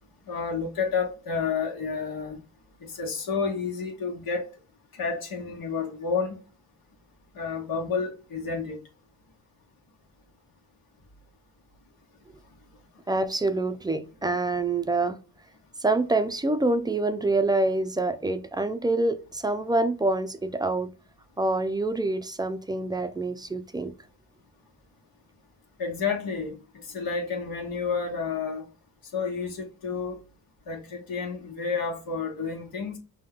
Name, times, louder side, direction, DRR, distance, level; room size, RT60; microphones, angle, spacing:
voice 1, 0.3-2.4 2.8-4.5 4.9-6.4 7.3-8.8 25.8-28.7 29.1-30.2 30.7-33.0, left 5 dB, 70° left, 1.2 m, -30 dB
voice 2, 13.1-15.2 15.8-20.9 21.4-23.9, right 2 dB, 10° right, 0.5 m, -26 dB
5.3 x 2.2 x 3.6 m
cardioid pair, 70°, 38 cm